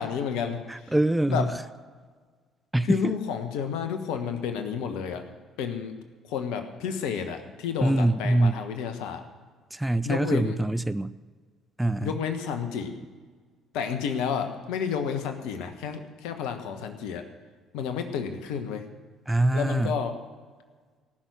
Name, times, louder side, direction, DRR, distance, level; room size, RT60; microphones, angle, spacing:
voice 1, 0.0-0.9 1.3-1.5 2.8-5.2 5.6-5.9 6.3-9.2 10.0-10.6 12.0-12.9 13.7-17.2 17.7-18.8 19.5-20.1, left 7 dB, 65° left, 7 dB, 1.3 m, -31 dB
voice 2, 0.7-1.6 2.7-3.1 7.8-8.5 9.7-11.1 11.8-12.1 19.3-20.0, right 1 dB, 10° right, 14 dB, 0.4 m, -24 dB
18.5 x 6.3 x 8.0 m, 1.5 s
figure-of-eight pair, 50°, 0 cm